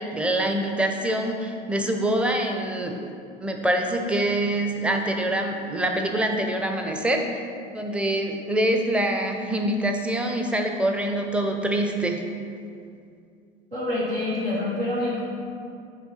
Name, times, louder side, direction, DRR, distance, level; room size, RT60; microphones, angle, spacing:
voice 1, 0.0-3.0 3.4-7.4 7.7-12.2, right 1 dB, 5° right, 3 dB, 0.5 m, -25 dB
voice 2, 13.7-15.2, left 2 dB, 85° right, -10 dB, 1.4 m, -26 dB
5.8 x 3.2 x 5.6 m, 2.4 s
figure-of-eight pair, 75°, 29 cm